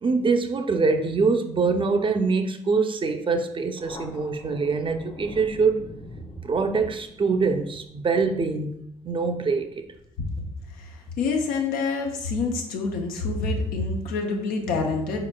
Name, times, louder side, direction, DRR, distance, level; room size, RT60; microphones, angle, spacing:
voice 1, 0.0-5.8 6.4-8.8 9.0-9.8, right 4 dB, 35° right, 6 dB, 0.5 m, -24 dB
Thunder, 3.8-10.8, left 2 dB, 35° left, 0.8 m, -46 dB
voice 2, 10.8-15.3, left 4 dB, 80° left, 3 dB, 0.6 m, -27 dB
4.2 x 3.8 x 2.2 m, 0.74 s
supercardioid pair, 55°, 14 cm